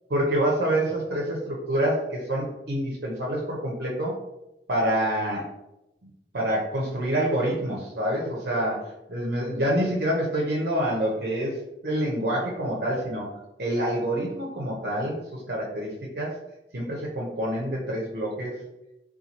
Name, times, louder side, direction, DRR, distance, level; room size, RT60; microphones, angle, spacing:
voice 1, 0.1-4.1 4.7-5.5 6.3-8.8 9.1-11.6 11.8-13.3 13.6-16.3 16.7-18.5, right 1 dB, 60° right, -4 dB, 0.6 m, -27 dB
4.0 x 2.3 x 2.8 m, 0.92 s
head